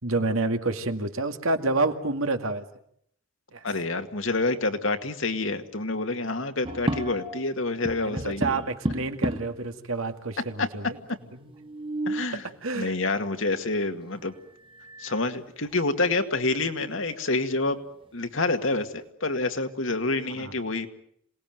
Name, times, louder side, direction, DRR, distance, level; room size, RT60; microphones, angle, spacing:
voice 1, 0.0-2.6 3.5-3.6 8.0-11.0 11.4-11.5 12.6-12.9 20.4-20.5, right 3 dB, 80° right, 7 dB, 2.2 m, -28 dB
voice 2, 3.6-8.6 10.6-10.7 12.1-12.4 12.7-14.3 15.0-17.8 18.1-20.9, left 2 dB, 70° left, 7 dB, 2.1 m, -27 dB
sound 1, 6.6-7.5 7.8-9.6 10.4-10.5 10.7-10.8 11.5-12.4 14.1-14.2 14.7-15.2 15.6-15.7 16.3-17.2, right 1 dB, 25° right, 1.3 m, -33 dB
27.0 x 19.5 x 9.3 m, 0.69 s
head